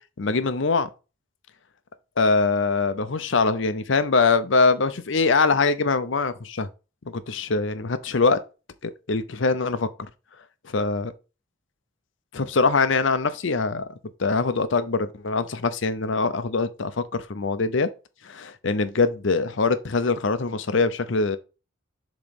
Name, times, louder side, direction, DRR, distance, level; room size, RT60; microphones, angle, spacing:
voice 1, 0.2-0.9 2.2-6.7 7.1-8.4 8.8-9.9 10.6-11.1 12.3-13.9 14.2-17.9 18.2-21.4, left 4 dB, 60° left, 0.7 m, -23 dB
7.0 x 3.2 x 5.2 m
head